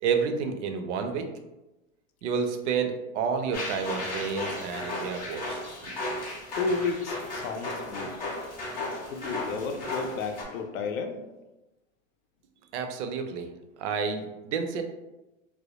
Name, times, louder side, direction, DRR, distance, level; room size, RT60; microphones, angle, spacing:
voice 1, 0.0-1.3 2.2-5.9 12.7-13.5 13.8-14.8, right 6 dB, 60° right, 6 dB, 0.5 m, -30 dB
sound 1, 3.5-10.4, left 2 dB, 25° left, 0.4 m, -35 dB
voice 2, 6.6-8.1 9.1-11.2, left 4 dB, 90° left, 5 dB, 0.5 m, -32 dB
2.2 x 2.1 x 2.8 m, 1.0 s
hypercardioid pair, 130°, 40 cm